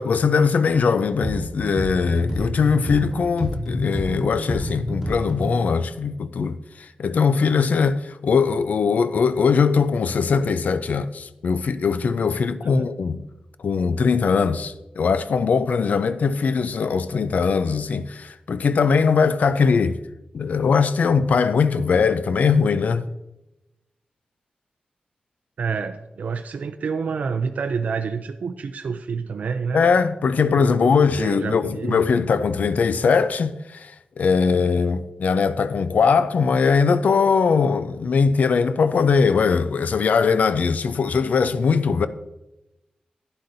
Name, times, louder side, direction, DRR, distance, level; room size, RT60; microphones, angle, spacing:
voice 1, 0.0-13.3 13.6-20.0 20.3-23.1 29.7-42.1, left 5 dB, 75° left, 0.4 m, -21 dB
sound 1, 1.2-5.7, equal, 5° left, 3.0 m, -29 dB
voice 2, 25.6-29.8 30.7-32.1, right 5 dB, 75° right, 0.4 m, -28 dB
11.5 x 9.9 x 2.6 m
wide cardioid pair, 145°, 3 cm